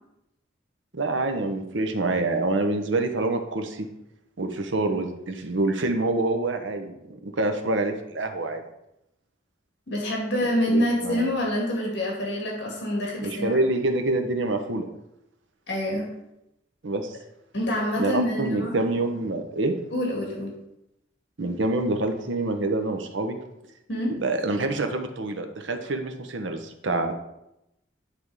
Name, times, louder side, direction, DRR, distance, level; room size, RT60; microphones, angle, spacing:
voice 1, 0.9-3.9 4.4-8.6 10.4-11.3 13.2-14.9 16.8-17.2 18.0-19.7 21.4-23.4 24.2-27.1, right 2 dB, 75° right, 6 dB, 0.9 m, -26 dB
voice 2, 9.9-13.6 15.7-16.2 17.5-18.8 19.9-20.5 23.9-24.2, left 1 dB, 65° left, -2 dB, 2.1 m, -26 dB
9.6 x 3.5 x 4.8 m, 0.86 s
head